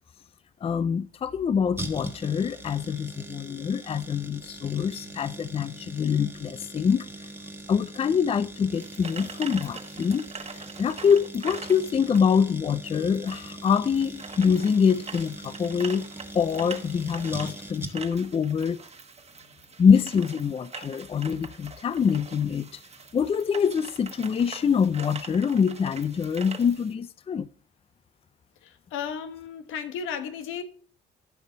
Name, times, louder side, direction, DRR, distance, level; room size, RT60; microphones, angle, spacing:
voice 1, 0.6-7.1 7.7-10.3 10.8-16.1 16.3-18.8 19.8-22.8 23.1-27.5, left 6 dB, 30° left, 0.4 m, -25 dB
sound 1, 1.8-18.3 18.5-18.6, right 2 dB, 10° right, 1.3 m, -41 dB
sound 2, 8.7-26.9, right 5 dB, 30° right, 1.3 m, -43 dB
voice 2, 28.9-30.6, left 7 dB, 90° left, 1.2 m, -34 dB
13.5 x 5.4 x 3.9 m
cardioid pair, 90°, 20 cm